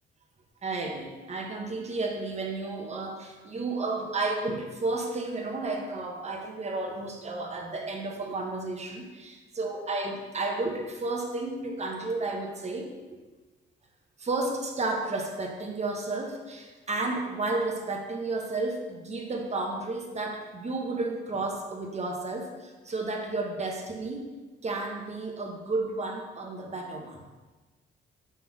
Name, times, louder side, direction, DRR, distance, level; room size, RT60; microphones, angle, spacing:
voice 1, 0.6-12.9 14.2-24.3 24.6-27.2, right 3 dB, 35° right, 2 dB, 1.1 m, -32 dB
5.8 x 3.9 x 4.8 m, 1.3 s
cardioid pair, 90°, 20 cm